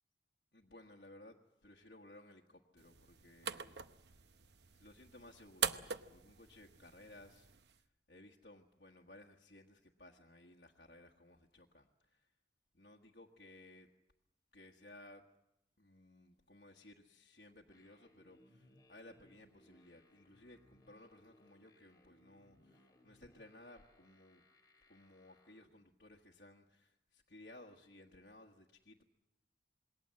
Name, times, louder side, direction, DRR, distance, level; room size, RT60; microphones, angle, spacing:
voice 1, 0.5-3.8 4.2-4.4 4.7-12.3 12.7-13.9 14.5-15.2 15.8-24.4 24.9-29.0, left 1 dB, 55° left, 0 dB, 1.5 m, -59 dB
sound 1, 2.8-7.8, right 7 dB, 70° right, 0.9 m, -43 dB
sound 2, 17.7-25.7, left 1 dB, 20° left, 4.1 m, -68 dB
27.0 x 21.0 x 7.6 m, 0.84 s
head